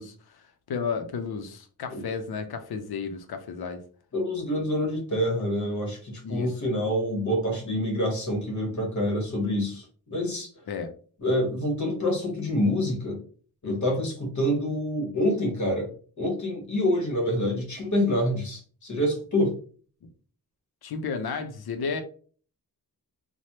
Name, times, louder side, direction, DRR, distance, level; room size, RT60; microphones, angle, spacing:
voice 1, 0.0-3.8 6.2-6.5 10.7-10.9 13.6-14.0 20.0-20.1 20.8-22.0, left 5 dB, 70° left, 8 dB, 0.5 m, -33 dB
voice 2, 4.1-9.9 10.1-10.5 11.2-13.2 13.6-15.9 16.2-19.5, left 1 dB, 50° left, 1 dB, 1.0 m, -26 dB
3.2 x 2.1 x 2.8 m, 0.43 s
wide cardioid pair, 140°, 38 cm